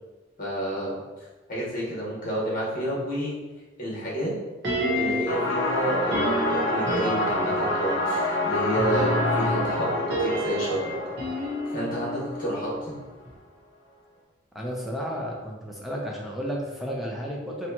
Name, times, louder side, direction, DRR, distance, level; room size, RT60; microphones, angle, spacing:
voice 1, 0.4-1.0 1.5-3.3 3.8-4.3 4.9-10.9 11.7-12.9, right 1 dB, 50° left, -6 dB, 1.2 m, -29 dB
sound 1, 4.6-5.5 6.1-7.7 8.8-13.0 13.3-13.4, equal, 65° right, 0.9 m, -30 dB
sound 2, 5.3-12.8, left 1 dB, 85° left, 0.6 m, -27 dB
voice 2, 14.5-17.7, equal, ahead, -2 dB, 0.5 m, -32 dB
4.2 x 2.2 x 2.8 m, 1.2 s
head